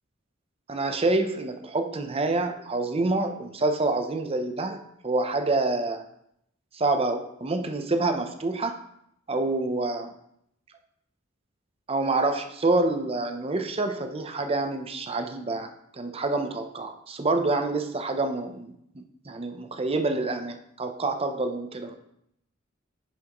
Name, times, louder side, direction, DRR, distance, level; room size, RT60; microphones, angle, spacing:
voice 1, 0.7-6.0 6.7-8.8 9.3-10.1 11.9-21.9, right 2 dB, 30° right, 7 dB, 0.7 m, -27 dB
9.8 x 6.0 x 3.0 m, 0.75 s
head